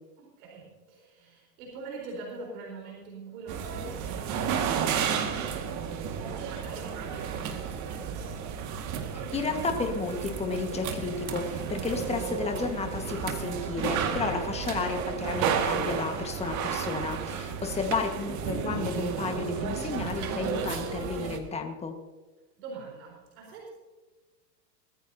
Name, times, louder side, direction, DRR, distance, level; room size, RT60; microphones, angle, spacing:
voice 1, 0.2-8.5 17.6-18.1 22.6-23.7, right 3 dB, 55° right, -2 dB, 4.4 m, -44 dB
sound 1, 3.5-21.4, right 7 dB, 35° right, 2.0 m, -32 dB
voice 2, 9.3-22.0, left 4 dB, 10° left, 5 dB, 1.6 m, -32 dB
20.0 x 14.5 x 2.8 m, 1.2 s
hypercardioid pair, 125°, 50 cm